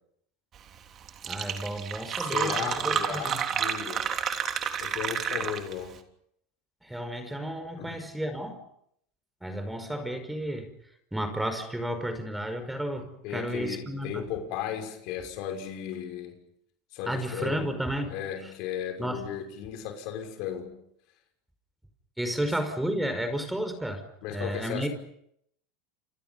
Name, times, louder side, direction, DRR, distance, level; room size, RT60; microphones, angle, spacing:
Fill (with liquid), 0.8-0.9 1.1-5.9, right 8 dB, 40° right, 3.4 m, -30 dB
voice 1, 1.2-3.4 6.8-8.6 9.4-10.7 11.1-14.3 17.1-18.1 19.0-19.3 22.2-24.0 24.3-24.9, right 1 dB, 5° right, 5.2 m, -32 dB
voice 2, 2.1-4.1 4.8-6.0 7.8-8.0 13.2-16.4 16.9-17.7 18.1-20.8 22.4-22.5 24.2-24.9, left 9 dB, 60° left, 6.1 m, -35 dB
30.0 x 28.0 x 5.6 m
supercardioid pair, 110°, 0 cm